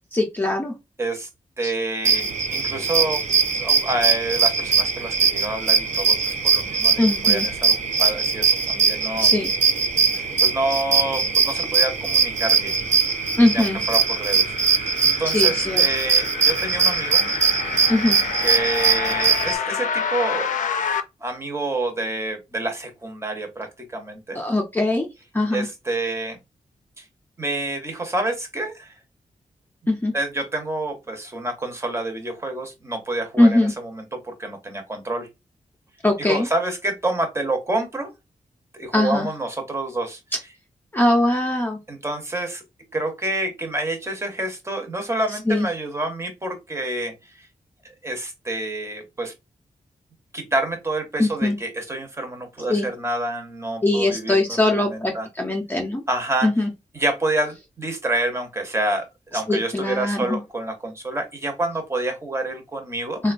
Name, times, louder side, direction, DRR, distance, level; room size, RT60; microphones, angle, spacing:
voice 1, 0.1-0.7 1.6-1.7 7.0-7.5 9.2-9.5 13.4-13.8 15.2-15.8 17.9-18.2 24.3-25.1 25.3-25.7 29.9-30.2 33.4-33.7 36.0-36.5 38.9-39.3 40.9-41.8 45.5-45.7 51.2-51.6 52.7-52.9 53.8-56.0 56.4-56.7 59.5-60.4 63.2-63.3, left 2 dB, 15° left, 1 dB, 0.5 m, -21 dB
voice 2, 1.0-1.3 1.6-3.2 3.6-9.3 10.1-12.7 13.5-17.3 18.4-20.6 21.2-24.4 25.5-26.4 27.0-27.1 27.4-28.9 30.1-35.3 36.2-38.1 38.7-40.2 41.9-42.6 42.9-47.5 48.0-49.3 50.3-54.4 54.7-55.3 56.1-56.5 56.9-63.2, right 2 dB, 20° right, 4 dB, 0.7 m, -28 dB
sound 1, 2.0-19.5, right 5 dB, 60° right, 0.5 m, -21 dB
sound 2, 12.7-21.0, left 7 dB, 70° left, 0.4 m, -29 dB
3.7 x 2.2 x 2.4 m, 0.23 s
wide cardioid pair, 150°, 14 cm